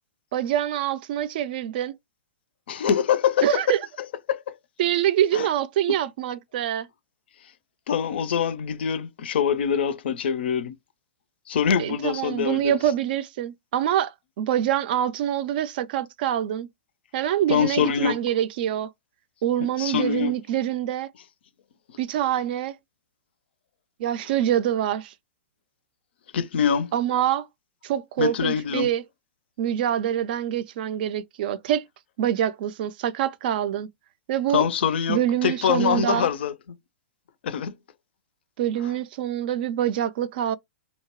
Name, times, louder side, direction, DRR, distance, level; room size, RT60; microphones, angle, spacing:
voice 1, 0.3-2.0 3.4-3.8 4.8-6.9 11.8-16.7 17.1-18.9 19.4-21.1 22.0-22.8 24.0-25.1 26.9-27.5 27.8-29.0 29.6-31.9 32.2-33.9 34.3-34.7 35.1-36.3 38.6-40.6, right 11 dB, 55° right, 0.4 m, -25 dB
voice 2, 2.7-3.7 4.3-4.5 5.3-5.5 7.9-10.8 11.5-12.7 17.5-18.2 19.8-20.3 26.3-26.9 28.2-28.9 34.5-36.5 37.4-37.8, left 7 dB, 65° left, 0.4 m, -24 dB
2.8 x 2.2 x 2.8 m
hypercardioid pair, 115°, 6 cm